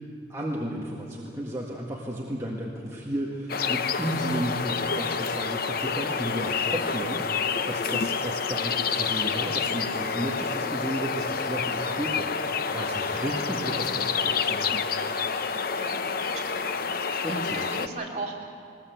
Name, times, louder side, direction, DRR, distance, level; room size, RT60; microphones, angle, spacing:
voice 1, 0.3-14.8 17.2-17.7, right 1 dB, 15° right, -4 dB, 1.7 m, -33 dB
sound 1, 3.5-17.9, left 5 dB, 50° left, 0.7 m, -28 dB
voice 2, 15.7-16.8 17.2-18.6, right 2 dB, 35° right, -2 dB, 3.1 m, -38 dB
20.5 x 20.0 x 8.2 m, 2.3 s
head